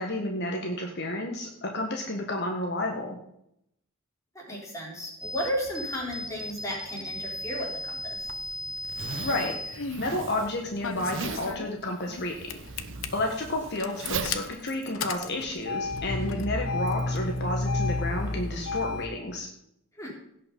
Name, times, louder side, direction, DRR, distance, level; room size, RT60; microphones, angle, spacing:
voice 1, 0.0-3.2 9.2-12.6 13.1-19.5, left 1 dB, 55° left, 1 dB, 1.5 m, -31 dB
voice 2, 4.4-8.2 16.2-16.4 20.0-20.1, equal, 15° left, -2 dB, 3.8 m, -34 dB
sound 1, 5.2-11.6, equal, 5° right, 1.3 m, -38 dB
Zipper (clothing), 8.2-15.6, right 4 dB, 65° right, 1.0 m, -39 dB
Engine starting, 9.5-10.1 10.8-12.2 12.5-13.1 13.8-19.1, left 3 dB, 80° left, 1.0 m, -31 dB
17.0 x 5.8 x 5.4 m, 0.76 s
head